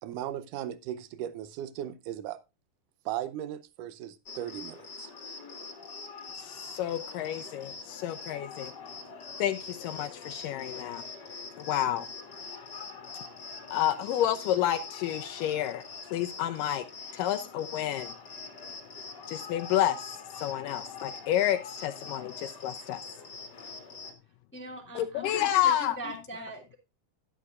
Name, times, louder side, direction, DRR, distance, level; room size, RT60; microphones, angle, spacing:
voice 1, 0.0-2.4 3.1-5.1, right 11 dB, 75° right, 2.3 m, -37 dB
Cricket, 4.3-24.1, left 4 dB, 35° left, 1.9 m, -44 dB
voice 2, 6.3-8.7 9.4-11.0 11.6-12.1 13.7-16.8 17.1-18.1 19.3-23.0 25.0-26.0, left 11 dB, 80° left, 2.2 m, -30 dB
voice 3, 24.5-26.7, right 1 dB, 10° left, 0.5 m, -41 dB
12.0 x 11.0 x 2.5 m
omnidirectional pair, 4.0 m